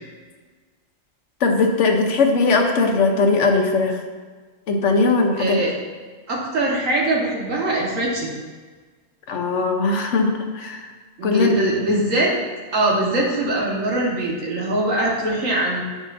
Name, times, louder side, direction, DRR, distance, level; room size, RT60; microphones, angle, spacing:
voice 1, 1.4-4.0 4.7-5.6 9.3-10.9 11.2-11.5, left 3 dB, 65° left, 3 dB, 1.1 m, -19 dB
voice 2, 5.4-5.7 6.3-8.3 11.2-12.3 12.7-15.8, right 1 dB, 75° right, -3 dB, 1.7 m, -22 dB
9.0 x 5.1 x 2.5 m, 1.4 s
omnidirectional pair, 1.3 m